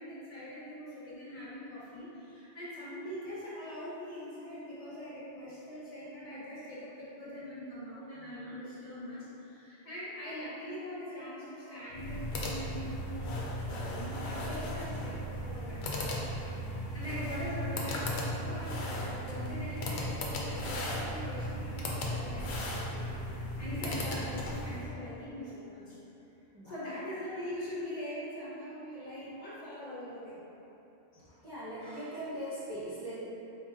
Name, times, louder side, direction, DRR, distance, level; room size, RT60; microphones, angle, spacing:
voice 1, 0.0-15.8 16.9-23.1 23.6-26.0 26.6-30.4, equal, 35° left, -10 dB, 1.0 m, -42 dB
sound 1, 11.9-24.9, equal, 90° left, 0.9 m, -36 dB
voice 2, 31.1-33.2, right 1 dB, 35° right, -11 dB, 0.4 m, -40 dB
3.8 x 3.7 x 2.5 m, 3.0 s
omnidirectional pair, 1.1 m